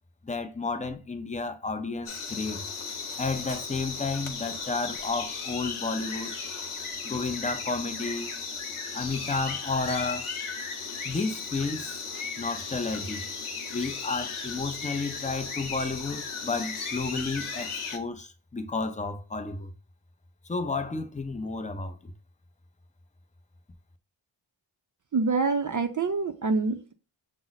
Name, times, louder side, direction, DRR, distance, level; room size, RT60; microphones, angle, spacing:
voice 1, 0.2-2.6 3.2-6.3 7.0-8.3 8.9-10.4 11.0-12.0 12.4-13.2 13.7-19.7 20.4-22.1, left 3 dB, 15° left, 0.5 m, -32 dB
sound 1, 2.1-18.0, left 5 dB, 75° left, 0.8 m, -36 dB
voice 2, 25.1-26.9, right 4 dB, 40° right, 0.4 m, -26 dB
5.9 x 2.0 x 3.9 m
wide cardioid pair, 80°, 50 cm